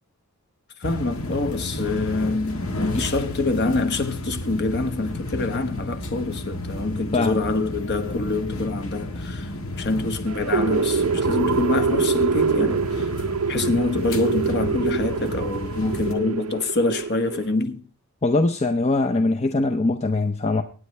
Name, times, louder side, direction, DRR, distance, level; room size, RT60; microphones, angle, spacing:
sound 1, 0.8-16.1, left 1 dB, 65° left, 1.6 m, -32 dB
voice 1, 0.8-9.5 9.8-13.1 13.5-17.8, left 3 dB, 50° left, 1.3 m, -26 dB
sound 2, 10.3-17.5, right 5 dB, 75° right, 0.6 m, -25 dB
voice 2, 18.2-20.6, left 2 dB, 30° left, 0.6 m, -22 dB
24.0 x 9.5 x 3.3 m
head